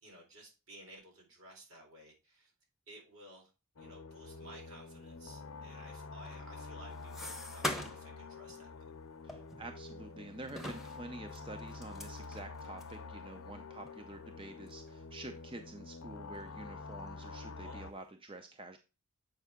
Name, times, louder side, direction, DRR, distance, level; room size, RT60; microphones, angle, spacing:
voice 1, 0.0-2.5 2.9-3.5 3.8-8.8 17.6-17.9, right 1 dB, 70° right, 0 dB, 4.2 m, -55 dB
sound 1, 3.8-17.9, left 4 dB, 85° left, 0.7 m, -47 dB
sound 2, 6.2-8.2 8.5-8.7 9.3-10.1 10.5-13.0 13.5-13.6 13.9-14.0 14.7-14.9 15.3-16.0 16.4-17.1, left 1 dB, ahead, 0.9 m, -43 dB
voice 2, 9.2-18.8, right 2 dB, 25° right, 6 dB, 0.6 m, -48 dB
7.9 x 5.4 x 3.6 m, 0.29 s
head